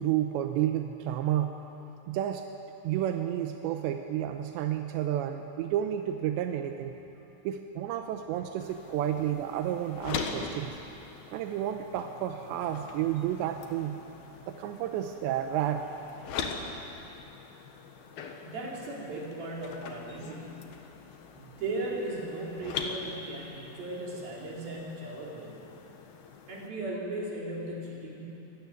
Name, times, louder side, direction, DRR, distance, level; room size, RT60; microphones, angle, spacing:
voice 1, 0.0-1.6 2.1-2.4 2.8-7.0 7.4-10.8 11.3-14.0 14.5-15.9, right 11 dB, 90° right, 6 dB, 3.1 m, -31 dB
sound 1, 8.6-26.7, left 5 dB, 65° left, 3.2 m, -42 dB
voice 2, 18.4-20.6 21.4-25.5 26.5-28.3, right 2 dB, 60° right, -4 dB, 5.9 m, -37 dB
25.0 x 16.0 x 9.5 m, 2.9 s
omnidirectional pair, 4.9 m